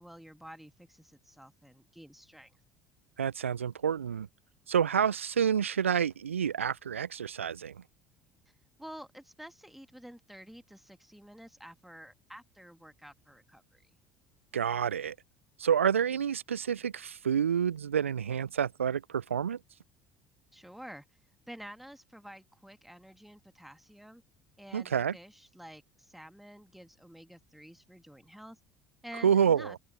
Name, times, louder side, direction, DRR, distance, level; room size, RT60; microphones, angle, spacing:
voice 1, 0.0-2.5 8.8-13.8 20.5-21.1 21.5-24.2 24.6-28.6 29.0-29.8, equal, ahead, 2.3 m, -50 dB
voice 2, 3.2-4.3 4.7-7.8 14.5-15.2 15.6-19.6 24.7-25.2 29.2-29.8, right 8 dB, 85° right, 0.3 m, -28 dB
figure-of-eight pair, 65°, 7 cm